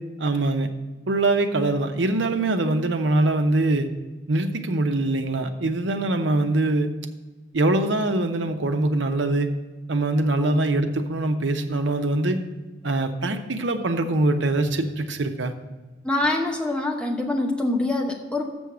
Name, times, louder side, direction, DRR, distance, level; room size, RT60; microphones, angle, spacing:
voice 1, 0.2-0.7 1.1-3.9 4.3-6.9 7.5-9.5 9.9-12.4 12.8-15.5, right 2 dB, 85° right, 7 dB, 0.8 m, -23 dB
voice 2, 16.0-18.4, left 2 dB, 5° left, 0 dB, 0.8 m, -25 dB
7.0 x 6.3 x 6.9 m, 1.2 s
head